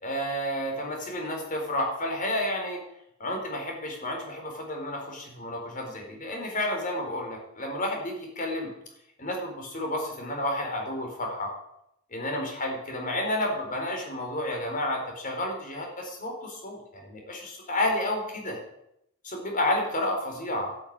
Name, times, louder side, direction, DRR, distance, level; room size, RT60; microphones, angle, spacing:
voice 1, 0.0-2.8 3.2-8.7 9.2-11.5 12.1-18.6 19.2-20.7, left 1 dB, 40° left, 2 dB, 4.4 m, -31 dB
12.5 x 10.0 x 8.8 m, 0.80 s
head